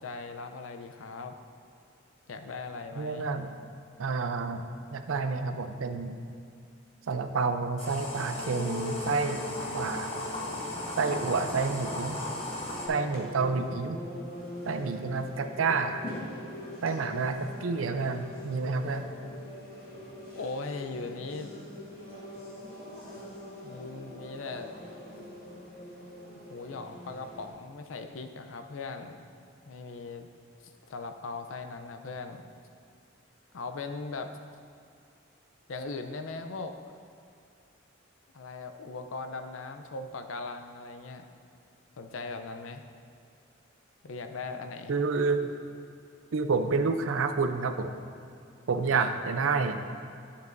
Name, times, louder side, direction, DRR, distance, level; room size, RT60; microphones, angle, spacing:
voice 1, 0.0-1.3 2.3-3.3 20.3-21.5 23.6-25.0 26.5-29.2 29.7-30.3 30.6-32.4 33.5-34.3 35.7-36.8 38.3-41.3 42.0-42.8 44.0-44.9 48.9-49.1, left 3 dB, 85° left, 7 dB, 0.5 m, -39 dB
voice 2, 3.0-3.5 4.0-4.6 4.9-6.1 7.1-10.1 11.0-12.2 12.9-14.0 14.7-16.1 16.8-19.1 44.9-45.5 46.3-48.0 48.7-49.8, right 4 dB, 85° right, 8 dB, 0.5 m, -29 dB
sound 1, 7.8-12.9, left 1 dB, 30° left, 1.0 m, -37 dB
sound 2, 8.4-27.5, left 1 dB, 45° left, 1.6 m, -42 dB
11.0 x 7.0 x 2.6 m, 2.5 s
head